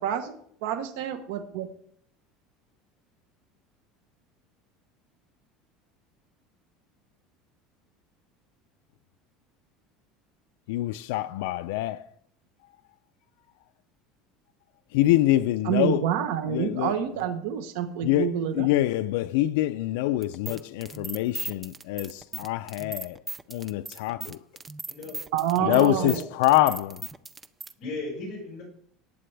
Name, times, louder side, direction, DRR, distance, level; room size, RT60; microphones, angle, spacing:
voice 1, 0.0-1.7 15.7-18.7 25.3-26.2, right 9 dB, 80° right, 1.1 m, -28 dB
voice 2, 10.7-12.1 12.6-12.7 14.9-16.1 16.5-17.0 18.0-23.2 23.5-24.4 25.6-27.1, left 15 dB, 85° left, 0.4 m, -25 dB
sound 1, 20.2-27.7, right 3 dB, 15° right, 0.5 m, -38 dB
voice 3, 24.9-25.2 25.5-26.1 27.8-28.6, left 2 dB, 35° left, 6.0 m, -36 dB
19.0 x 8.4 x 3.4 m
cardioid pair, 165°, 0 cm